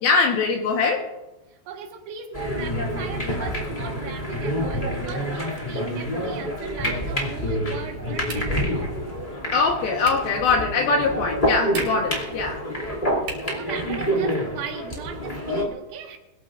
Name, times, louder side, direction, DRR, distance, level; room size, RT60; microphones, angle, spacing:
voice 1, 0.0-1.0 9.5-12.6, left 4 dB, 75° left, 1 dB, 2.2 m, -22 dB
voice 2, 1.5-8.9 13.4-16.2, right 6 dB, 80° right, 2 dB, 4.2 m, -38 dB
sound 1, 2.3-15.6, equal, 50° left, 0.5 m, -27 dB
sound 2, 8.2-8.7 10.0-10.4 11.6-12.2 13.2-13.6, right 3 dB, 45° right, 4.4 m, -37 dB
22.5 x 14.0 x 2.5 m, 1.0 s
omnidirectional pair, 5.9 m